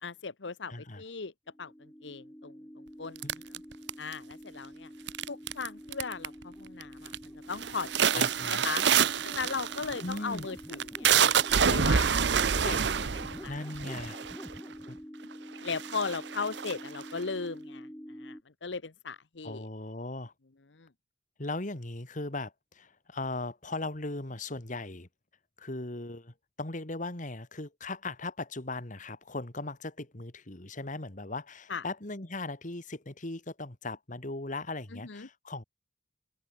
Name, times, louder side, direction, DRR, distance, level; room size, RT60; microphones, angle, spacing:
voice 1, 0.0-1.3 1.6-2.5 3.0-3.2 4.0-4.9 5.3-7.1 7.5-8.8 9.2-11.1 11.7-12.2 12.5-13.6 15.6-17.9 18.2-19.7 20.7-20.9 31.7-31.8 34.9-35.3, left 4 dB, 80° left, 1.0 m, -37 dB
voice 2, 0.7-1.0 3.2-3.4 8.1-8.6 10.0-10.5 13.5-14.2 14.9-15.0 19.4-20.3 21.4-25.1 25.6-35.6, left 2 dB, 45° left, 2.1 m, -38 dB
sound 1, 1.5-18.4, equal, 10° left, 7.1 m, -46 dB
sound 2, 3.2-4.3 5.1-5.7 5.9-6.4 6.8-7.2 7.5-14.6 15.2-15.3 15.6-17.2, right 7 dB, 70° right, 0.8 m, -27 dB
open air
head